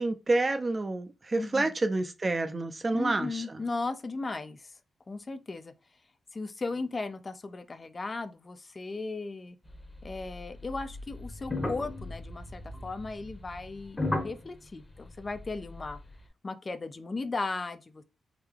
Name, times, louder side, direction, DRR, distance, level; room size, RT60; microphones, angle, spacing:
voice 1, 0.0-3.6, right 2 dB, 35° right, 0.5 m, -29 dB
voice 2, 2.9-4.8 5.1-5.7 6.3-9.6 10.0-16.0 16.4-18.0, left 3 dB, 35° left, 0.4 m, -36 dB
sound 1, 9.6-16.2, left 2 dB, 20° left, 0.9 m, -37 dB
3.6 x 2.2 x 3.3 m
cardioid pair, 75°, 0 cm